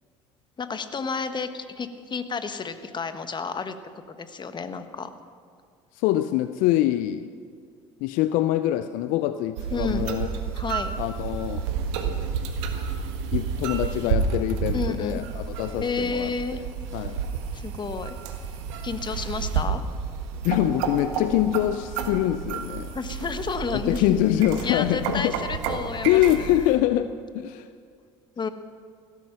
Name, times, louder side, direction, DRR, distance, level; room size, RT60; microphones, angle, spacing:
voice 1, 0.6-3.7 4.1-5.1 9.7-10.1 10.5-10.9 14.7-15.3 15.8-16.6 17.5-18.2 18.8-19.8 22.9-24.2 24.6-26.5 26.8-26.9 28.4-28.5, left 5 dB, 30° left, 9 dB, 1.3 m, -31 dB
voice 2, 5.9-7.3 8.0-10.3 11.0-11.7 13.3-16.6 16.9-17.2 20.4-22.9 23.7-25.3 26.0-27.7, left 13 dB, 65° left, 12 dB, 0.5 m, -24 dB
sound 1, 9.6-26.8, right 6 dB, 75° right, 1.6 m, -30 dB
16.0 x 13.5 x 5.9 m, 2.2 s
hypercardioid pair, 65°, 15 cm